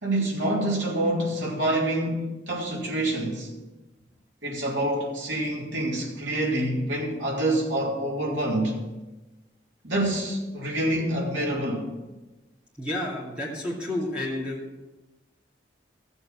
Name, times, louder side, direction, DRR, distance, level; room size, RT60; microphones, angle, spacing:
voice 1, 0.0-3.5 4.4-8.7 9.8-11.9, right 1 dB, 85° right, -3 dB, 3.5 m, -27 dB
voice 2, 12.8-14.6, left 1 dB, 5° right, -5 dB, 2.4 m, -30 dB
15.0 x 7.1 x 5.9 m, 1.1 s
head